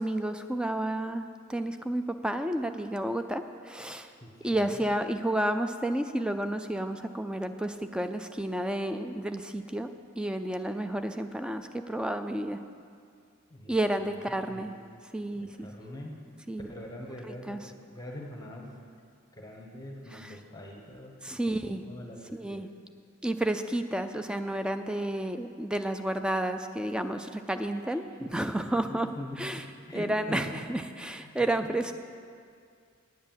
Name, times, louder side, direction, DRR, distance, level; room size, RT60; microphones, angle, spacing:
voice 1, 0.0-4.1 4.4-9.9 10.2-12.6 13.7-14.7 15.1-16.0 16.5-16.7 17.5-17.6 20.1-20.3 21.2-21.8 22.3-22.7 23.2-29.1 29.4-29.6 29.9-31.9, right 1 dB, 5° right, 8 dB, 0.4 m, -31 dB
voice 2, 4.2-4.8 13.5-13.7 14.0-14.8 15.3-16.2 16.7-18.8 19.3-22.6 27.7-29.4 29.7-30.4 31.1-31.4, left 1 dB, 20° left, 0 dB, 1.1 m, -44 dB
9.5 x 8.4 x 7.3 m, 2.3 s
head